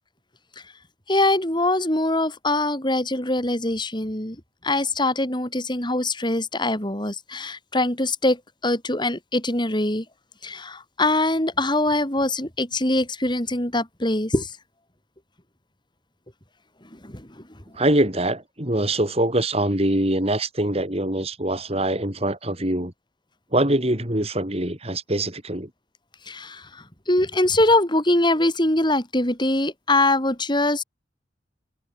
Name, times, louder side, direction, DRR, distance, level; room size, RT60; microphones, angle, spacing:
voice 1, 1.1-4.4 4.6-10.0 10.4-14.5 17.0-17.3 26.3-26.7 27.1-30.8, left 2 dB, 25° left, 6.8 m, -23 dB
voice 2, 17.8-22.9 23.5-25.7, right 1 dB, 35° right, 5.3 m, -23 dB
head